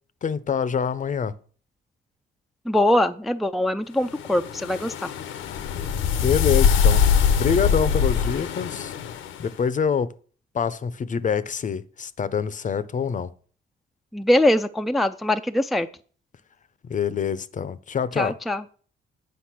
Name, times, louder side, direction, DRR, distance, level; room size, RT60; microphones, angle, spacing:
voice 1, 0.2-1.3 6.2-7.0 7.4-8.9 9.4-10.1 10.5-13.3 16.8-18.4, left 6 dB, 40° left, 0.6 m, -25 dB
voice 2, 2.7-5.1 14.1-15.9 18.2-18.6, left 1 dB, ahead, 0.4 m, -22 dB
sound 1, 4.1-9.4, left 7 dB, 85° left, 0.8 m, -22 dB
8.4 x 5.3 x 5.9 m
cardioid pair, 90°, 20 cm